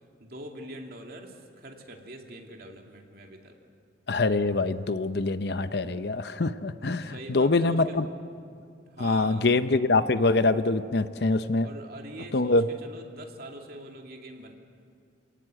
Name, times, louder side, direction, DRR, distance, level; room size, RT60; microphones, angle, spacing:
voice 1, 0.2-3.6 6.8-8.0 8.9-9.5 11.6-14.5, right 1 dB, 55° right, 2 dB, 2.5 m, -44 dB
voice 2, 4.1-8.1 9.0-11.7 12.3-12.7, left 3 dB, 60° left, 12 dB, 0.7 m, -24 dB
28.0 x 18.0 x 7.7 m, 2.3 s
head